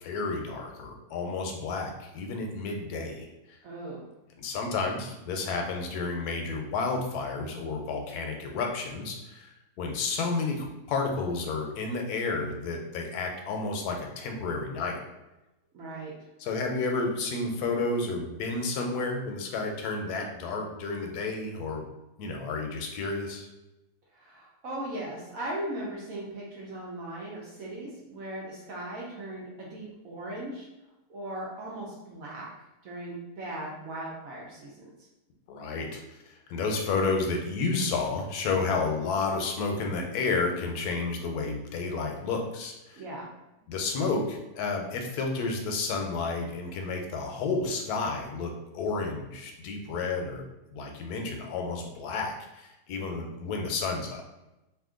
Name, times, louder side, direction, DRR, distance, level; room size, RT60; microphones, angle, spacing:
voice 1, 0.0-3.3 4.4-9.5 9.8-15.0 16.4-21.8 22.2-23.5 35.5-36.2 36.5-43.0 43.7-50.4 50.7-54.2, left 3 dB, 75° left, 2 dB, 1.1 m, -31 dB
voice 2, 3.6-4.0 15.7-16.2 24.1-30.7 31.1-32.5 32.8-34.9 42.9-43.3, right 1 dB, 65° right, -4 dB, 1.0 m, -38 dB
2.8 x 2.5 x 3.6 m, 0.96 s
omnidirectional pair, 1.7 m